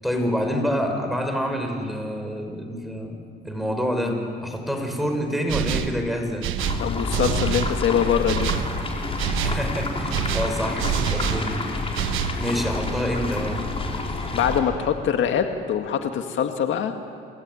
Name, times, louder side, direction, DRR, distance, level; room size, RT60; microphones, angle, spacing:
voice 1, 0.0-3.2 3.4-6.5 9.4-11.6 12.4-13.6, equal, ahead, 3 dB, 6.5 m, -27 dB
sound 1, 5.5-6.0 6.4-7.8 8.3-8.7 9.2-9.6 10.1-11.5 11.9-12.4, right 11 dB, 90° right, 1.2 m, -26 dB
sound 2, 6.6-14.6, left 2 dB, 30° left, 5.2 m, -28 dB
voice 2, 6.8-8.5 14.3-16.9, left 8 dB, 75° left, 6 dB, 1.8 m, -23 dB
29.0 x 19.0 x 9.9 m, 2.2 s
cardioid pair, 90°, 20 cm